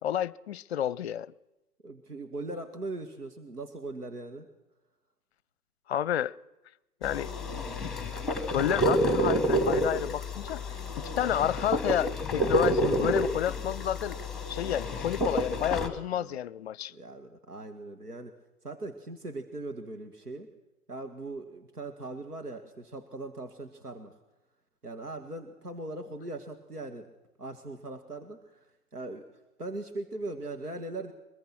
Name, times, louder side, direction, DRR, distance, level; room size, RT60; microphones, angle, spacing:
voice 1, 0.0-1.3 5.9-6.3 7.0-8.1 8.5-10.6 11.0-14.2 14.5-16.9, left 10 dB, 45° left, 0.7 m, -30 dB
voice 2, 1.8-4.5 16.2-16.4 16.9-18.3 18.6-20.5 20.9-24.1 24.8-27.1 27.4-28.6 28.9-29.2 29.6-31.1, right 2 dB, 85° right, 2.2 m, -40 dB
sound 1, 7.0-15.9, equal, ahead, 1.9 m, -29 dB
24.0 x 21.5 x 6.1 m
figure-of-eight pair, 115°, 45 cm